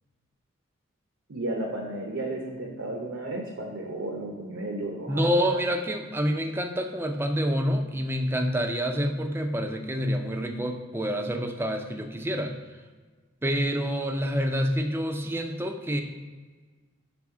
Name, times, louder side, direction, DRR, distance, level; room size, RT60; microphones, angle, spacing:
voice 1, 1.3-5.5, right 2 dB, 70° right, 0 dB, 0.8 m, -33 dB
voice 2, 5.1-12.5 13.4-16.0, equal, 10° right, 5 dB, 0.4 m, -27 dB
6.1 x 3.4 x 4.8 m, 1.4 s
head